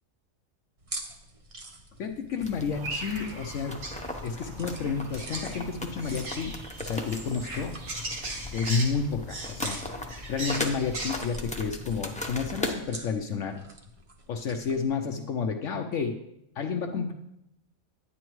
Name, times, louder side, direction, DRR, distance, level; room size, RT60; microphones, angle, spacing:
sound 1, 0.8-14.9, right 2 dB, 30° right, 0.8 m, -47 dB
voice 1, 2.0-3.8 4.2-6.5 6.8-7.8 8.5-9.8 10.3-13.6 14.3-16.2 16.6-17.1, left 5 dB, 70° left, 4 dB, 1.0 m, -30 dB
sound 2, 2.4-12.7, left 2 dB, 5° left, 0.7 m, -38 dB
sound 3, 2.7-11.1, right 2 dB, 70° right, 1.8 m, -39 dB
9.9 x 9.8 x 3.1 m, 0.82 s
omnidirectional pair, 1.4 m